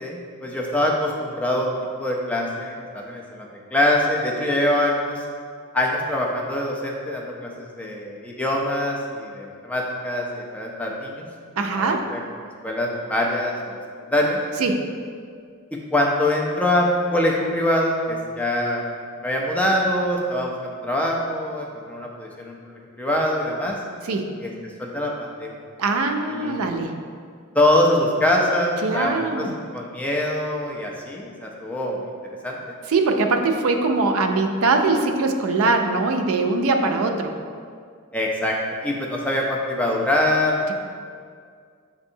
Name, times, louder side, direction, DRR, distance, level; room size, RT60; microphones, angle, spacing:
voice 1, 0.0-1.7 2.0-5.2 5.7-11.3 11.7-12.2 12.6-14.4 15.9-18.8 19.2-23.8 24.4-25.5 26.3-26.6 27.5-29.5 29.7-32.0 32.4-32.6 38.1-38.6 38.8-40.7, left 1 dB, 5° left, -2 dB, 0.4 m, -24 dB
voice 2, 11.6-12.1 14.6-14.9 24.0-24.3 25.8-26.9 28.8-29.5 32.9-37.4, right 3 dB, 70° right, 4 dB, 0.4 m, -22 dB
6.4 x 2.6 x 2.7 m, 2.1 s
head